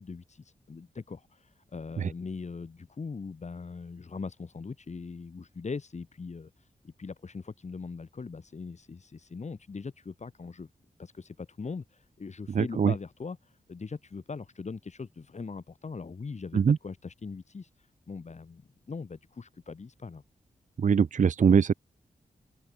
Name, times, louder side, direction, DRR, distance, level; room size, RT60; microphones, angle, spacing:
voice 1, 0.0-10.7 11.0-20.2, left 4 dB, 50° left, 4.8 m, -41 dB
voice 2, 12.5-12.9 16.5-16.8 20.8-21.7, right 6 dB, 55° right, 0.7 m, -22 dB
wide cardioid pair, 100°, 15 cm